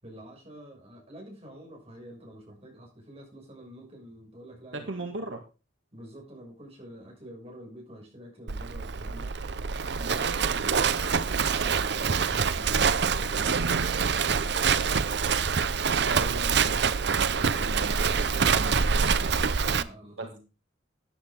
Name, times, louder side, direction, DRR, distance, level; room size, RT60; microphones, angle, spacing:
voice 1, 0.0-4.9 5.3-5.4 5.9-9.4 9.9-15.2 19.7-20.4, right 1 dB, 30° right, -1 dB, 6.4 m, -48 dB
voice 2, 4.7-5.4 10.0-10.8 15.9-19.3 20.2-20.4, right 2 dB, 80° right, 4 dB, 1.9 m, -39 dB
Livestock farm animals working animals, 8.5-19.8, right 6 dB, 60° right, 0.7 m, -25 dB
14.0 x 9.9 x 3.7 m, 0.31 s
head